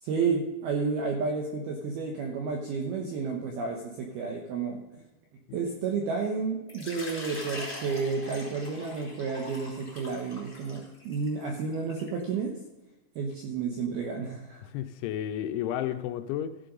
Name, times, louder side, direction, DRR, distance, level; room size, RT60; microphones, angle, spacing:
voice 1, 0.0-4.8 5.5-12.6 13.2-14.6, right 4 dB, 80° right, 1 dB, 2.3 m, -31 dB
Water / Liquid, 6.7-12.2, left 1 dB, 10° left, 2.3 m, -42 dB
voice 2, 14.6-16.6, left 11 dB, 85° left, 9 dB, 2.8 m, -32 dB
14.0 x 7.7 x 5.3 m, 1.1 s
omnidirectional pair, 5.9 m